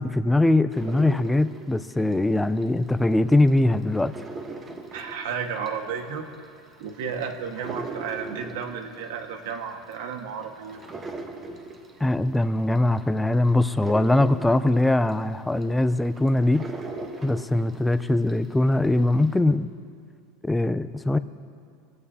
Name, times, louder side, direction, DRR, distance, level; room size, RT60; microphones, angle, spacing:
voice 1, 0.0-4.1 12.0-16.7 17.2-19.7 20.4-21.2, left 2 dB, 5° left, 12 dB, 0.4 m, -22 dB
sound 1, 0.7-3.0 3.3-18.5 18.8-19.4, right 3 dB, 20° right, 1.1 m, -39 dB
voice 2, 4.9-6.3 6.8-10.8, right 6 dB, 75° right, 4 dB, 1.6 m, -33 dB
24.0 x 16.0 x 2.8 m, 2.3 s
supercardioid pair, 160°, 0 cm